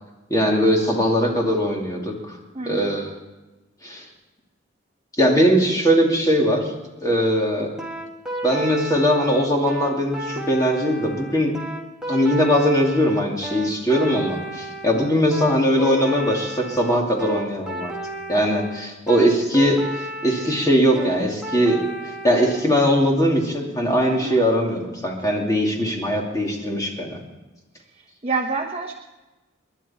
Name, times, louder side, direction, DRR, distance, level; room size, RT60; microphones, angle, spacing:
voice 1, 0.3-2.4 2.7-3.2 3.8-4.0 5.2-6.7 7.0-7.7 8.4-11.6 12.1-17.9 18.3-27.2, equal, 15° left, -1 dB, 2.6 m, -20 dB
voice 2, 2.5-2.9 24.0-24.5 27.9-28.9, right 3 dB, 30° right, 1 dB, 1.1 m, -28 dB
sound 1, 7.8-22.6, right 1 dB, 5° right, 1.7 m, -33 dB
29.5 x 11.0 x 4.3 m, 1.1 s
head